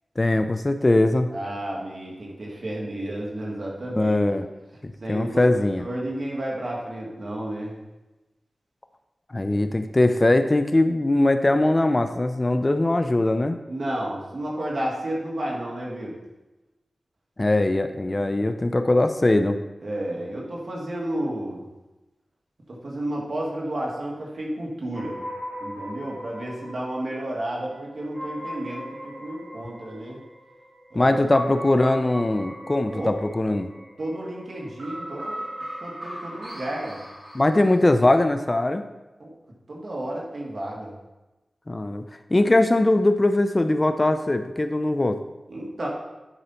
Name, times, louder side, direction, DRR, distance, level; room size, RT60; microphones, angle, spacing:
voice 1, 0.2-1.3 4.0-4.4 4.8-5.8 9.3-13.6 17.4-19.6 30.9-33.7 37.3-38.8 41.7-42.0 42.3-45.2, left 2 dB, 30° left, 8 dB, 0.5 m, -21 dB
voice 2, 1.3-4.2 5.0-5.5 5.8-7.7 13.7-16.1 19.8-21.6 22.7-25.2 25.6-30.2 30.9-31.2 32.9-33.1 34.0-35.4 35.8-37.0 39.2-39.3 39.7-40.9 45.5-45.9, right 1 dB, 60° right, -3 dB, 2.2 m, -31 dB
sound 1, 24.9-38.0, equal, 40° right, 2.1 m, -39 dB
9.9 x 5.4 x 4.4 m, 1.1 s
wide cardioid pair, 75°, 0 cm